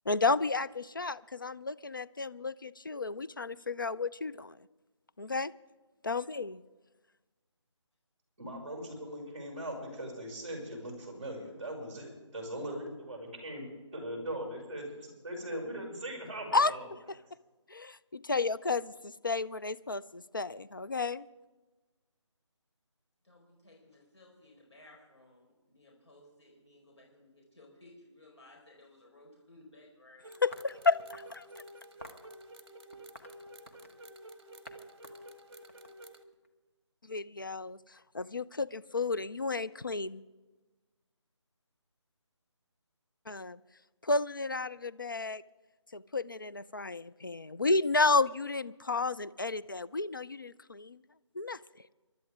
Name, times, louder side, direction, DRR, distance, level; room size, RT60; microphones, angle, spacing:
voice 1, 0.1-4.5 5.2-5.5 6.0-6.6 16.5-16.7 17.7-21.2 30.4-31.4 37.1-37.8 38.1-40.2 43.3-43.6 44.0-45.4 45.9-51.0 51.4-51.6, left 3 dB, 45° left, 15 dB, 0.4 m, -32 dB
voice 2, 8.4-13.6 13.9-16.9, right 1 dB, 25° right, -3 dB, 5.7 m, -40 dB
voice 3, 23.2-30.3, left 2 dB, 65° left, -1 dB, 4.6 m, -58 dB
sound 1, 30.2-36.2, right 1 dB, 55° right, 1.4 m, -51 dB
sound 2, 30.5-31.4 32.0-32.3 32.9-34.0 34.7-34.8 35.0-36.5, left 1 dB, 30° left, 1.0 m, -51 dB
28.0 x 12.0 x 3.6 m, 1.2 s
figure-of-eight pair, 180°, 16 cm